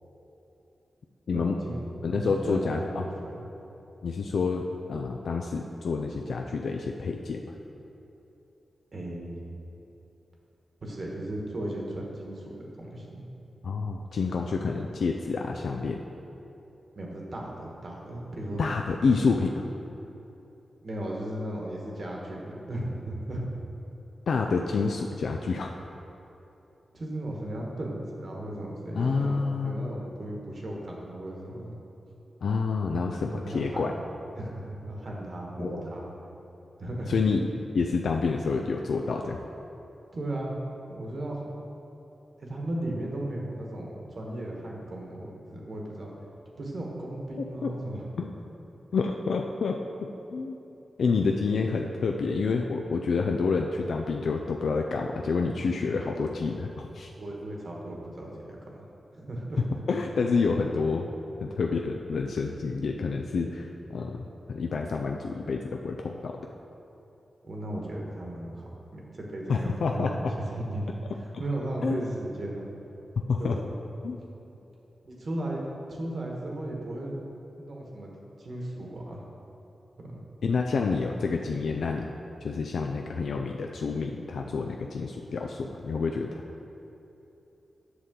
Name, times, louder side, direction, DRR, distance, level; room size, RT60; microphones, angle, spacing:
voice 1, 1.3-3.1 3.3-3.5 8.9-9.4 10.8-13.3 17.0-18.6 20.8-23.5 26.9-31.7 33.3-33.9 34.4-36.1 36.8-37.1 40.1-40.6 40.9-41.5 42.4-46.1 46.6-48.1 57.2-58.3 58.6-58.8 59.1-59.6 67.4-70.1 70.4-70.8 71.4-72.7 73.4-73.7 75.0-75.6 75.9-77.2 77.6-78.1 78.4-79.2 80.0-80.2, right 1 dB, 45° right, -2 dB, 1.2 m, -36 dB
voice 2, 2.0-3.0 4.0-4.6 4.9-7.4 13.6-16.0 18.6-19.6 24.3-25.7 29.0-29.9 32.4-33.9 35.6-35.8 37.1-37.5 37.7-39.4 47.6-47.7 48.2-48.3 48.9-49.8 50.3-50.6 51.0-57.1 59.9-61.1 61.4-66.4 69.5-70.3 71.8-72.0 73.3-73.6 74.0-74.2 80.4-82.1 82.4-86.4, left 4 dB, 75° left, 2 dB, 0.4 m, -28 dB
8.0 x 6.4 x 3.7 m, 3.0 s
wide cardioid pair, 135°, 0 cm